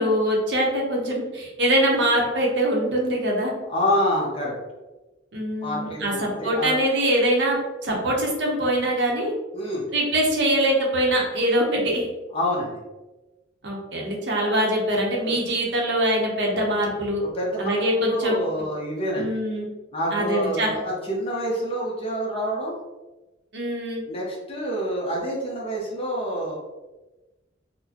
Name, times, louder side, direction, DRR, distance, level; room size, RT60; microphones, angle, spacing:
voice 1, 0.0-3.5 5.3-9.3 9.9-12.1 13.6-17.2 17.6-18.4 19.1-19.7 20.1-20.8 23.5-24.0, right 1 dB, 65° right, -1 dB, 0.8 m, -23 dB
voice 2, 3.7-4.6 5.6-6.8 9.5-9.8 12.3-12.8 15.2-15.4 17.2-19.3 19.9-22.8 24.1-26.6, equal, 30° left, -3 dB, 0.8 m, -27 dB
4.2 x 2.1 x 2.8 m, 1.1 s
head